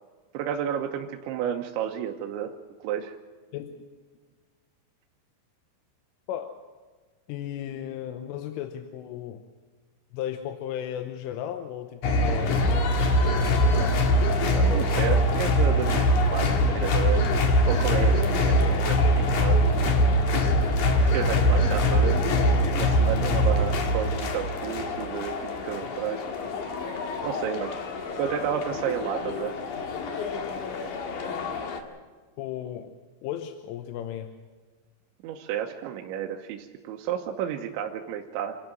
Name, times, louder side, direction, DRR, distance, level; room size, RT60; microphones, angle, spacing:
voice 1, 0.3-2.5 2.8-3.2 14.5-17.3 17.7-20.0 20.3-20.7 21.0-22.2 22.8-26.2 27.2-27.7 28.2-29.5 35.2-38.6, right 9 dB, 75° right, 2 dB, 3.1 m, -31 dB
voice 2, 3.5-3.8 6.3-6.5 7.3-9.4 10.1-12.8 13.1-14.0 23.1-23.6 32.4-32.9 33.2-34.3, left 10 dB, 80° left, 7 dB, 3.4 m, -35 dB
sound 1, 12.0-31.8, left 1 dB, 60° left, 2.2 m, -23 dB
27.5 x 12.5 x 7.7 m, 1.4 s
omnidirectional pair, 5.9 m